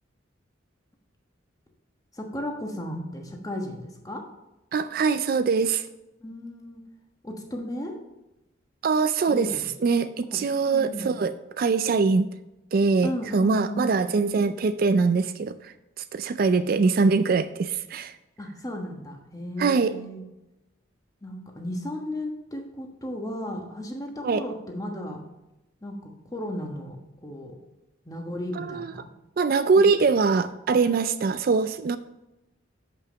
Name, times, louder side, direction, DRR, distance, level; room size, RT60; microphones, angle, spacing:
voice 1, 2.1-4.3 6.2-6.8 7.2-8.0 9.3-9.6 10.3-11.1 13.0-14.0 16.5-16.9 18.4-20.2 21.2-25.2 25.8-27.6 28.0-29.1 29.8-29.9, left 1 dB, 20° left, 2 dB, 1.2 m, -35 dB
voice 2, 4.7-5.9 8.8-9.5 9.8-12.3 12.7-18.1 19.6-19.9 24.2-24.4 28.6-28.9 29.4-32.0, right 4 dB, 50° right, 12 dB, 0.3 m, -23 dB
7.1 x 5.6 x 6.8 m, 0.96 s
head